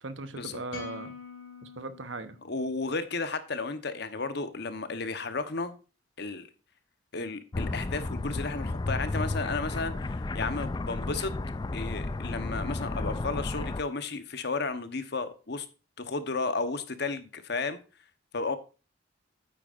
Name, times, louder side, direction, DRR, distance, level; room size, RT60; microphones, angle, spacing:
voice 1, 0.0-1.1 1.6-2.4, right 3 dB, 70° right, 1.0 m, -39 dB
sound 1, 0.7-3.1, left 5 dB, 80° left, 2.5 m, -45 dB
voice 2, 2.4-5.7 6.2-6.5 7.1-11.3 11.7-15.7 16.0-17.8 18.3-18.6, left 3 dB, 60° left, 1.0 m, -33 dB
sound 2, 7.5-13.8, left 2 dB, 20° left, 0.3 m, -33 dB
9.0 x 8.7 x 2.5 m
head